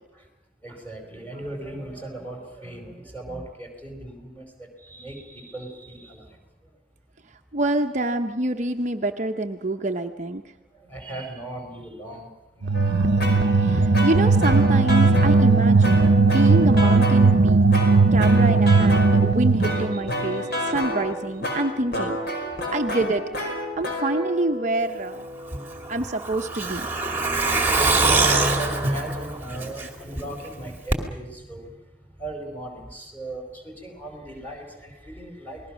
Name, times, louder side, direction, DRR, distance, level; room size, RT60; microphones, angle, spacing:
voice 1, 0.6-6.3 10.8-12.3 12.6-12.8 19.7-20.0 20.3-20.8 22.4-22.8 25.4-25.6 25.9-26.1 27.1-31.7 32.2-35.6, right 1 dB, 10° left, 2 dB, 4.9 m, -38 dB
voice 2, 7.5-10.4 13.6-17.6 18.1-22.5 22.7-25.3 25.9-26.9, right 1 dB, 40° right, 4 dB, 0.8 m, -26 dB
sound 1, 12.6-20.0, right 3 dB, 70° right, 0.7 m, -18 dB
sound 2, 12.7-15.5 15.8-17.3 17.7-19.2 19.6-26.6, equal, 55° left, 5.5 m, -30 dB
Truck, 25.5-30.2 30.5-30.6 30.9-31.0, right 3 dB, 10° right, 2.1 m, -23 dB
28.5 x 20.0 x 6.3 m, 1.0 s
head